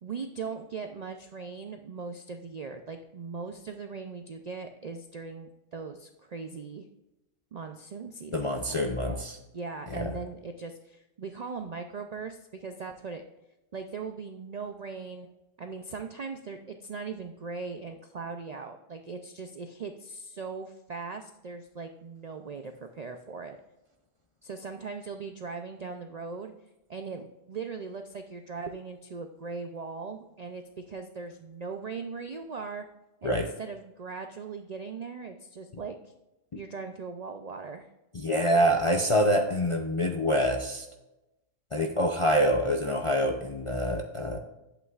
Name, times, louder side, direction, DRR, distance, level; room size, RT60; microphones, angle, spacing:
voice 1, 0.0-6.9 7.5-9.2 9.5-13.2 13.7-15.3 15.6-23.6 24.4-26.5 26.9-32.8 33.2-36.1 36.5-37.9, right 4 dB, 60° right, 6 dB, 0.4 m, -39 dB
voice 2, 8.3-9.4 9.9-10.1 33.2-33.5 38.1-40.9 41.7-44.4, equal, 40° left, 3 dB, 0.4 m, -26 dB
11.0 x 8.2 x 2.4 m, 0.97 s
omnidirectional pair, 1.3 m